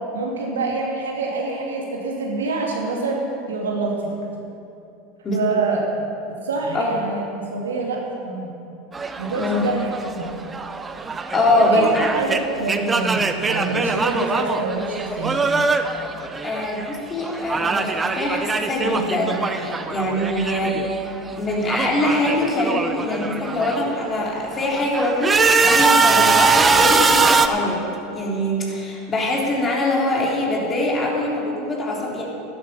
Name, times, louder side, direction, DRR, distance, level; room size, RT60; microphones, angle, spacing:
voice 1, 0.1-4.2 5.3-5.9 6.3-8.5 9.2-10.3 11.4-11.8 12.1-15.4, right 3 dB, 90° right, -1 dB, 2.2 m, -26 dB
sound 1, 8.9-17.0 17.2-21.0 21.2-23.9 24.4-27.5, right 4 dB, 20° right, 0.8 m, -22 dB
voice 2, 11.3-12.1 15.1-15.2 15.5-15.6 16.4-20.8 21.4-27.8 28.1-32.2, left 1 dB, 30° left, -3 dB, 3.5 m, -23 dB
12.0 x 12.0 x 5.5 m, 2.7 s
hypercardioid pair, 90°, 0 cm